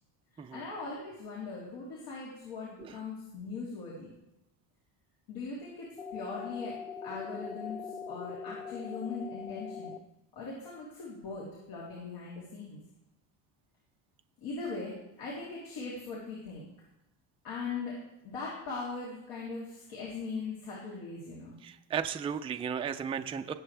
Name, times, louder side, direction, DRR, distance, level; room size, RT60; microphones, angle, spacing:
voice 1, 0.3-4.1 5.3-6.7 7.0-9.9 10.3-12.8 14.4-16.7 17.4-18.0 18.2-21.6, left 4 dB, 85° left, -6 dB, 3.6 m, -40 dB
sound 1, 6.0-10.0, left 5 dB, 15° left, 0.6 m, -41 dB
voice 2, 21.6-23.5, right 7 dB, 15° right, 7 dB, 0.3 m, -35 dB
20.0 x 7.9 x 3.3 m, 0.90 s
cardioid pair, 145°, 48 cm